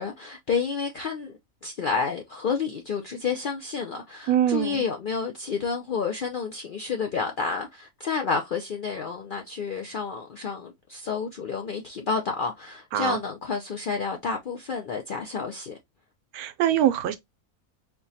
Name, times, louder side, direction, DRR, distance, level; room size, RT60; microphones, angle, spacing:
voice 1, 0.0-1.3 1.6-15.8, left 5 dB, 70° left, 0.5 m, -30 dB
voice 2, 4.3-4.8 12.9-13.2 16.3-17.2, right 11 dB, 90° right, 1.1 m, -23 dB
4.3 x 2.2 x 2.6 m
omnidirectional pair, 1.5 m